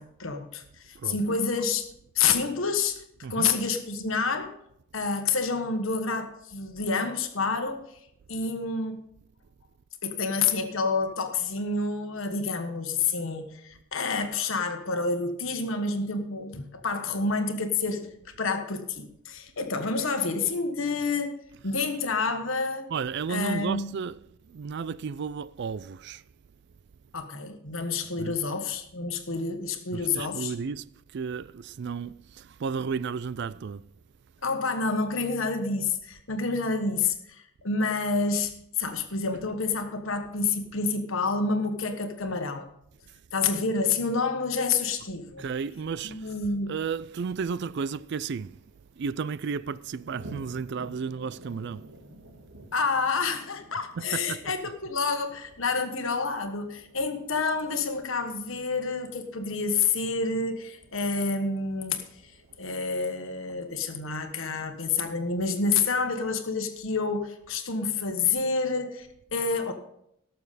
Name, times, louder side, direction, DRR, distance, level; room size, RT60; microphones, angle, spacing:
voice 1, 0.0-1.9 2.1-3.0 3.3-4.5 4.9-7.8 8.3-9.0 10.0-22.9 23.3-23.9 27.1-30.5 34.4-42.7 43.3-45.4 46.0-46.7 52.7-62.0 62.2-62.3 62.6-69.7, left 4 dB, 70° left, 1.3 m, -28 dB
voice 2, 0.9-1.4 3.2-3.6 22.9-26.2 28.2-28.4 29.9-33.9 45.4-46.4 46.7-48.6 48.9-51.9 54.0-54.4, right 5 dB, 55° right, 0.4 m, -33 dB
sound 1, 48.4-65.7, right 1 dB, 70° right, 2.3 m, -52 dB
18.0 x 6.9 x 4.1 m
head